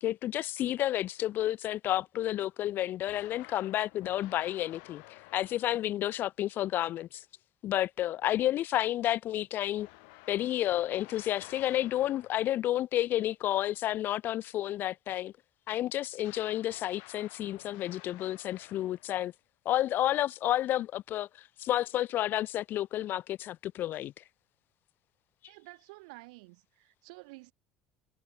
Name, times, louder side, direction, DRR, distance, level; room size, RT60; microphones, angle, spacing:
voice 1, 0.0-7.2 7.6-9.9 10.3-15.3 15.7-19.3 19.7-24.2, left 13 dB, 55° left, 0.4 m, -31 dB
sound 1, 3.0-6.0 9.8-12.7 16.2-19.3, left 40 dB or more, 70° left, 0.8 m, -53 dB
voice 2, 25.5-27.5, right 26 dB, 75° right, 3.1 m, -51 dB
hypercardioid pair, 70°, 4 cm